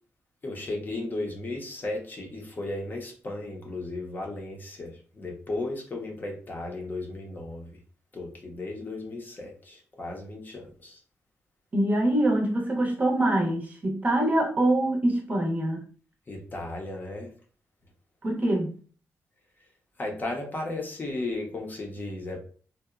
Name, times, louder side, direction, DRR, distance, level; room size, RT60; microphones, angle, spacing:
voice 1, 0.4-7.8 8.1-11.0 16.3-17.3 20.0-22.4, left 2 dB, 35° left, 0.6 m, -35 dB
voice 2, 11.7-15.9 18.2-18.8, right 1 dB, 30° right, 0.6 m, -24 dB
2.8 x 2.0 x 2.3 m
cardioid pair, 120°, 6 cm